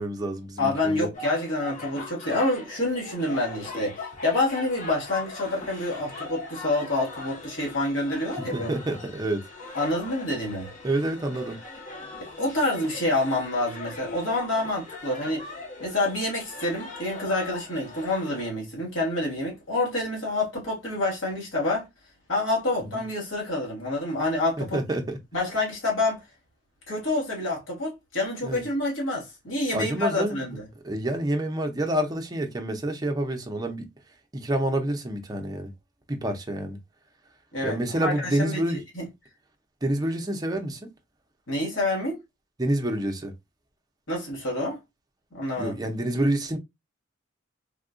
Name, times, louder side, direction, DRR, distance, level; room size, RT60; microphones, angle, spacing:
voice 1, 0.0-1.1 8.5-9.4 10.8-11.6 22.9-23.0 24.6-25.2 28.4-28.6 29.7-30.4 30.8-33.9 34.3-35.7 36.1-36.8 37.6-38.8 39.8-40.9 42.6-43.3 45.6-46.6, right 1 dB, 20° right, 0.5 m, -28 dB
voice 2, 0.6-8.7 9.7-10.7 12.2-15.4 15.8-21.9 22.3-24.8 25.3-26.2 26.9-30.7 37.5-39.1 41.5-42.2 44.1-44.8 45.3-45.8, left 2 dB, 80° left, 1.3 m, -27 dB
sound 1, 1.1-18.5, left 3 dB, 40° left, 0.9 m, -40 dB
3.5 x 2.3 x 2.4 m
head